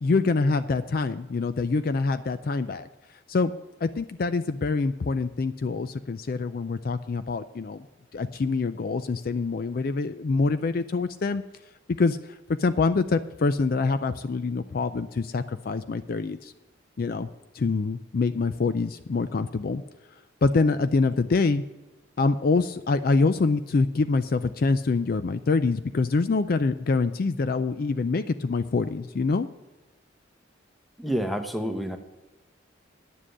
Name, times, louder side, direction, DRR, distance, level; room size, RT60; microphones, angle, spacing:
voice 1, 0.0-2.9 3.3-3.5 3.8-7.9 8.1-11.4 12.0-12.2 12.6-16.5 17.0-17.3 17.5-19.8 20.4-21.6 22.2-29.5, left 3 dB, 50° left, 11 dB, 0.4 m, -25 dB
voice 2, 31.0-32.0, equal, ahead, 6 dB, 0.9 m, -28 dB
10.0 x 7.5 x 7.6 m, 1.1 s
head